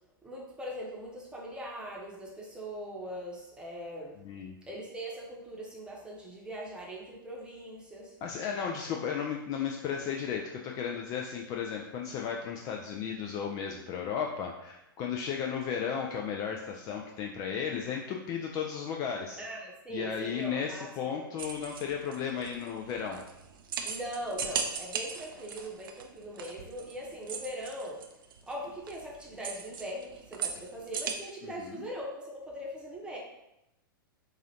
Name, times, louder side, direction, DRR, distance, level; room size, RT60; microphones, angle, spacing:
voice 1, 0.2-4.2 4.7-8.2 19.4-20.9 23.8-28.0 28.5-33.2, equal, 10° right, -3 dB, 1.0 m, -41 dB
voice 2, 4.2-4.5 8.2-19.4 19.9-23.2 31.4-31.8, left 7 dB, 30° left, 1 dB, 0.4 m, -34 dB
sound 1, 21.4-31.1, right 6 dB, 65° right, 0.5 m, -39 dB
4.8 x 2.6 x 2.8 m, 0.88 s
hypercardioid pair, 110°, 12 cm